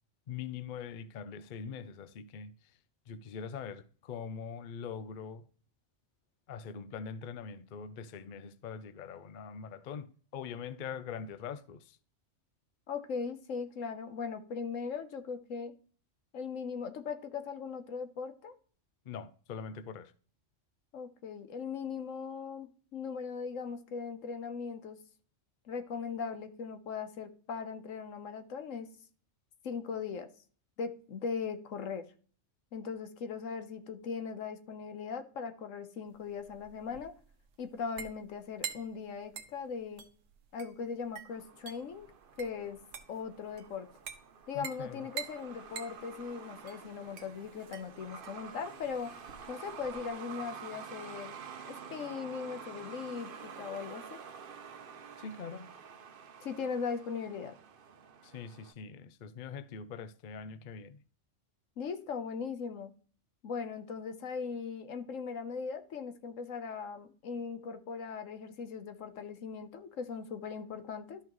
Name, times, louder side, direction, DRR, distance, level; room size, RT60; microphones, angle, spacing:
voice 1, 0.3-2.8 3.1-5.4 6.5-12.0 19.1-20.1 44.5-45.1 55.2-55.7 58.2-61.0, left 6 dB, 50° left, 0.6 m, -43 dB
voice 2, 12.9-15.8 16.3-18.6 20.9-25.0 25.7-28.9 29.6-30.3 30.8-32.1 32.7-37.1 37.6-40.0 40.5-42.1 42.4-42.8 43.1-43.9 44.5-49.1 49.5-51.3 51.7-54.2 56.4-57.6 61.8-62.9 63.4-71.2, left 5 dB, 85° left, 1.3 m, -39 dB
sound 1, 36.1-50.1, right 7 dB, 70° right, 1.1 m, -47 dB
Truck, 41.3-58.7, right 6 dB, 50° right, 0.8 m, -49 dB
12.5 x 5.7 x 3.0 m
omnidirectional pair, 1.3 m